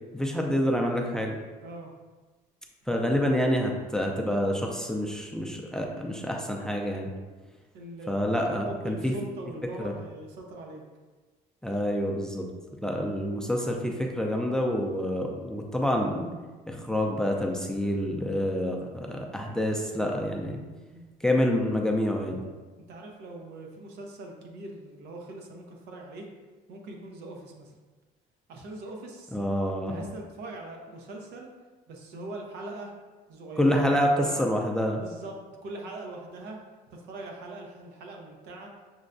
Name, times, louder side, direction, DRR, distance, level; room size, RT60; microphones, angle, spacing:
voice 1, 0.1-1.4 2.9-7.1 8.1-9.1 9.8-9.9 11.6-12.5 12.8-16.3 16.7-20.6 21.2-22.4 29.3-30.0 33.6-35.0, equal, 5° left, 1 dB, 0.4 m, -27 dB
voice 2, 7.7-8.1 8.7-10.8 20.9-21.1 22.9-26.3 26.7-27.8 28.5-29.4 29.9-31.5 31.9-32.9 33.3-34.4 34.9-36.6 36.9-38.7, right 2 dB, 80° right, 1 dB, 0.7 m, -41 dB
6.2 x 2.2 x 2.5 m, 1.3 s
cardioid pair, 110°, 17 cm